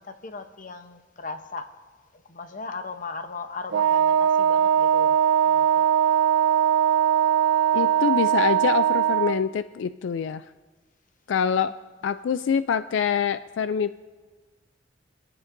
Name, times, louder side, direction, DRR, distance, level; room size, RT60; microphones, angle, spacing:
voice 1, 0.0-1.7 2.3-5.2 5.5-5.8 11.4-11.7, left 4 dB, 45° left, 8 dB, 0.8 m, -38 dB
Wind instrument woodwind instrument, 3.7-9.4, right 9 dB, 75° right, 0.3 m, -20 dB
voice 2, 7.7-10.4 11.3-11.7 12.0-14.0, left 7 dB, 75° left, 13 dB, 0.3 m, -25 dB
27.0 x 11.0 x 2.6 m, 1.4 s
head